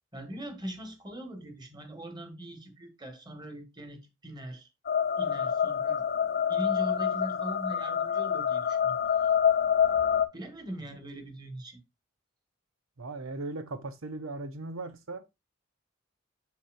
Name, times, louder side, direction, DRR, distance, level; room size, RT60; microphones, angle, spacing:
voice 1, 0.1-4.7 5.2-6.1 6.5-8.9 9.2-9.3 10.3-11.8, right 1 dB, 20° right, 1.9 m, -41 dB
sound 1, 4.9-10.3, left 8 dB, 50° left, 0.7 m, -27 dB
voice 2, 13.0-15.2, right 2 dB, 85° right, 1.0 m, -38 dB
7.1 x 6.1 x 2.6 m
head